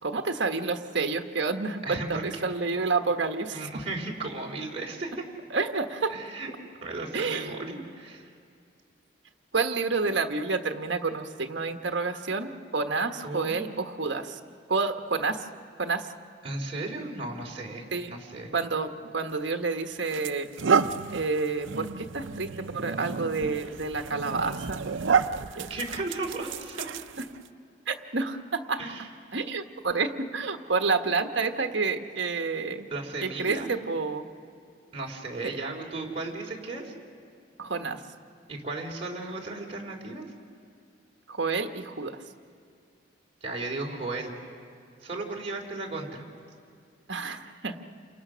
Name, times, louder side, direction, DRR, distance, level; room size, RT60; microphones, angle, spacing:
voice 1, 0.0-3.7 5.5-6.1 7.1-7.8 9.5-14.4 14.7-15.5 15.8-16.1 17.9-18.1 18.5-20.5 21.1-24.8 25.6-25.7 27.2-27.3 27.9-28.8 29.3-32.9 33.2-34.2 37.6-38.0 41.3-42.2 47.1-47.8, right 4 dB, 65° right, 6 dB, 1.3 m, -29 dB
voice 2, 1.8-2.2 3.5-5.2 6.1-6.5 6.8-8.3 13.2-13.6 16.4-18.5 25.7-26.9 28.8-29.1 32.9-33.7 34.9-36.9 38.5-40.2 43.4-44.3 45.0-46.2, right 2 dB, 30° right, -1 dB, 3.4 m, -35 dB
sound 1, 19.3-19.5 20.1-27.5, right 5 dB, 80° right, 0.7 m, -30 dB
29.0 x 27.0 x 6.3 m, 2.4 s
head